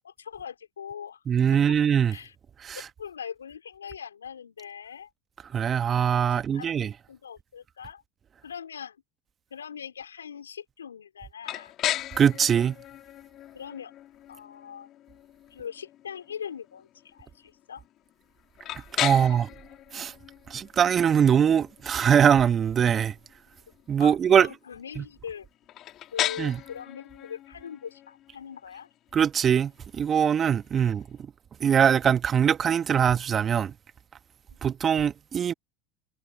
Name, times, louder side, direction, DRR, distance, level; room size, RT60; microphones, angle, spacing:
voice 1, 0.0-1.2 2.1-2.3 2.8-5.1 6.3-6.8 7.1-8.0 8.4-9.0 9.5-11.7 13.5-13.9 14.3-14.9 15.5-17.8 19.1-19.4 24.0-25.5 26.1-28.9 30.8-30.9, left 8 dB, 85° left, 4.0 m, -41 dB
voice 2, 1.3-2.1 2.6-2.8 5.5-6.9 12.2-12.7 19.0-19.5 19.9-20.1 20.5-23.1 23.9-24.5 25.0-25.1 26.4-26.6 29.1-31.2 31.6-33.7 34.6-35.5, right 8 dB, 30° right, 1.5 m, -22 dB
sound 1, 11.4-31.2, left 13 dB, 45° left, 3.0 m, -38 dB
hypercardioid pair, 80°, 0 cm